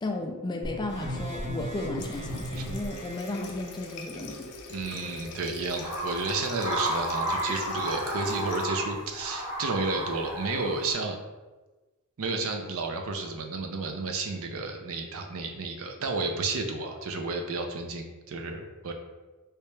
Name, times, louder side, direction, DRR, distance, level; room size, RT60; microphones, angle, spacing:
voice 1, 0.0-4.5, left 2 dB, 20° left, 3 dB, 0.3 m, -34 dB
sound 1, 0.6-3.3, equal, 30° right, 0.8 m, -36 dB
Water tap faucet, 2.0-8.7, left 3 dB, 90° left, 0.6 m, -43 dB
voice 2, 4.7-11.2 12.2-18.9, right 3 dB, 65° right, 4 dB, 0.5 m, -32 dB
sound 2, 5.8-10.9, right 1 dB, 10° right, 1.2 m, -32 dB
3.3 x 2.8 x 3.2 m, 1.2 s
head